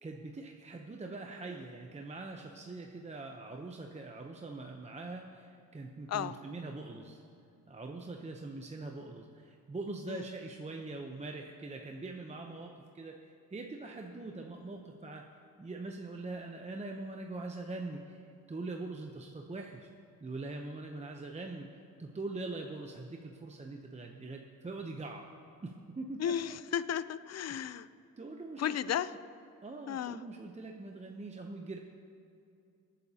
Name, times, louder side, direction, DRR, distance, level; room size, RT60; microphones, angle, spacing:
voice 1, 0.0-7.2 7.7-15.3 15.6-18.2 18.5-19.9 20.2-21.7 22.0-25.3 25.6-26.3 27.5-27.6 28.2-28.9 29.6-31.8, right 3 dB, 20° right, 2 dB, 0.7 m, -43 dB
voice 2, 26.2-27.9 28.6-29.1 29.9-30.2, left 9 dB, 45° left, 15 dB, 0.5 m, -34 dB
24.5 x 9.2 x 2.9 m, 2.6 s
cardioid pair, 95°, 36 cm